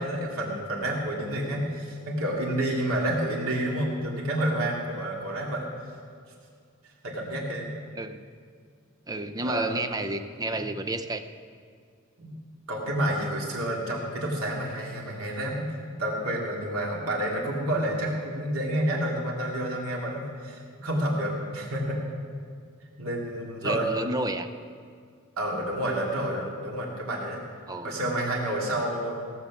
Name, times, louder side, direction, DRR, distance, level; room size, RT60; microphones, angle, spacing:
voice 1, 0.0-5.7 7.0-7.7 9.4-9.7 12.2-12.3 12.7-15.7 16.0-22.0 23.0-23.9 25.4-27.4 27.8-29.2, right 1 dB, 85° right, -2 dB, 2.9 m, -29 dB
voice 2, 8.0-8.3 9.1-11.2 23.6-24.5 27.7-28.0, right 2 dB, 20° right, 9 dB, 0.6 m, -31 dB
17.0 x 7.2 x 7.2 m, 2.1 s
head